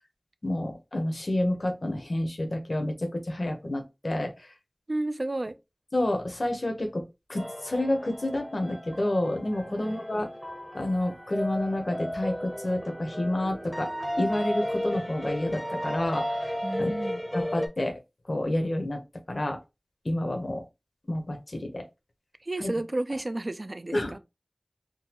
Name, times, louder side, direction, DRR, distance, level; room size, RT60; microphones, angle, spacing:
voice 1, 0.4-4.5 5.9-7.0 7.3-10.3 10.7-13.9 14.2-16.2 16.8-16.9 17.3-18.0 18.3-19.0 19.3-19.6 20.0-20.6 21.1-21.8 22.6-22.7 23.9-24.2, left 1 dB, 75° left, 0.8 m, -29 dB
voice 2, 4.9-5.5 9.7-10.0 16.6-17.2 22.4-24.2, right 2 dB, 60° right, 0.3 m, -32 dB
sound 1, 7.4-17.7, equal, ahead, 0.6 m, -34 dB
3.8 x 2.2 x 2.9 m
wide cardioid pair, 45°, 0 cm